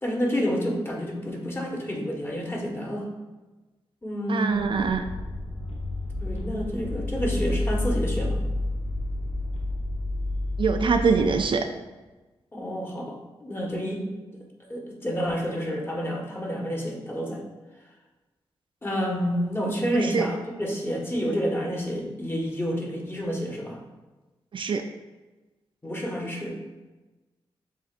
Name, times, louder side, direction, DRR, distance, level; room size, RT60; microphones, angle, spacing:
voice 1, 0.0-3.1 4.0-4.7 6.2-8.4 12.5-14.0 14.7-17.4 18.8-23.8 25.8-26.6, equal, 20° left, -1 dB, 1.3 m, -29 dB
voice 2, 4.3-5.0 10.6-11.7 19.9-20.3 24.5-24.8, right 5 dB, 55° right, 6 dB, 0.3 m, -23 dB
sound 1, 4.5-11.7, left 1 dB, 75° left, 0.9 m, -30 dB
7.4 x 2.5 x 2.5 m, 1.2 s
cardioid pair, 60°, 10 cm